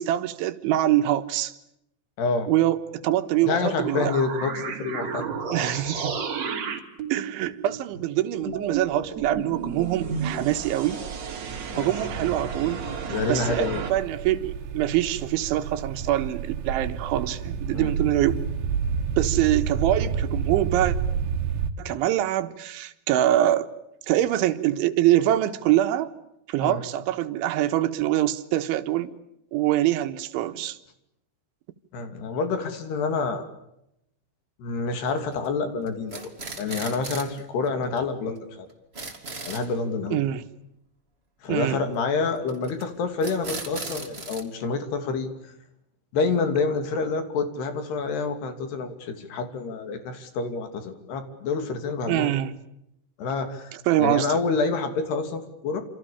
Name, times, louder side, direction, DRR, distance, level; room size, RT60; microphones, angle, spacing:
voice 1, 0.0-1.5 2.5-4.1 5.5-6.2 7.1-11.0 11.8-18.4 19.2-21.0 21.8-23.7 24.1-26.1 26.5-29.1 29.5-30.8 40.1-40.4 41.5-41.8 52.1-52.5 53.9-54.3, right 13 dB, 90° right, 9 dB, 3.7 m, -24 dB
voice 2, 2.2-2.5 3.4-5.2 11.7-11.9 13.1-13.8 17.7-17.9 26.6-26.8 31.9-33.5 34.6-36.3 36.6-38.7 39.4-40.2 41.4-45.3 46.1-52.3 53.2-55.8, left 4 dB, 65° left, 8 dB, 4.6 m, -28 dB
sound 1, 3.4-13.9, right 5 dB, 40° right, 3.6 m, -33 dB
sound 2, 13.9-21.7, right 6 dB, 70° right, 3.6 m, -29 dB
sound 3, 35.1-35.5 35.9-37.4 37.7-37.8 38.0-38.1 38.4-38.5 38.7-39.7 42.5-42.8 43.2-44.4, right 3 dB, 15° right, 2.4 m, -37 dB
28.0 x 28.0 x 7.0 m, 0.81 s
omnidirectional pair, 5.3 m